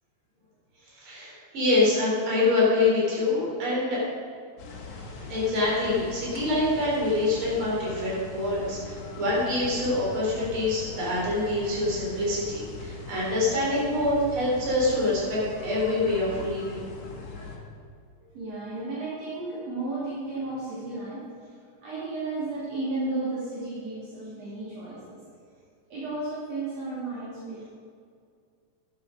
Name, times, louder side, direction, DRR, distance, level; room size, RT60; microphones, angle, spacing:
voice 1, 1.0-4.0 5.3-16.8, left 2 dB, 45° right, -6 dB, 4.5 m, -25 dB
sound 1, 4.6-17.6, left 3 dB, 70° left, 2.8 m, -41 dB
voice 2, 18.3-21.2 21.8-25.2 25.9-27.8, right 2 dB, 60° right, -10 dB, 4.1 m, -33 dB
11.5 x 9.6 x 5.2 m, 2.2 s
omnidirectional pair, 3.3 m